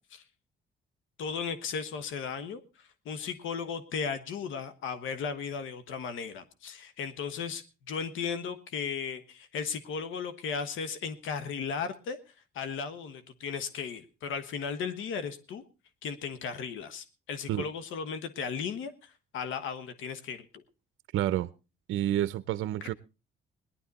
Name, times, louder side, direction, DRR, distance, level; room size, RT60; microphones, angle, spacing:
voice 1, 1.2-12.2 12.5-15.6 16.0-20.6 22.8-22.9, left 6 dB, 80° left, 11 dB, 1.3 m, -36 dB
voice 2, 21.1-21.5 21.9-22.9, right 13 dB, 85° right, 15 dB, 0.6 m, -29 dB
18.5 x 11.5 x 4.1 m, 0.31 s
cardioid pair, 90°, 20 cm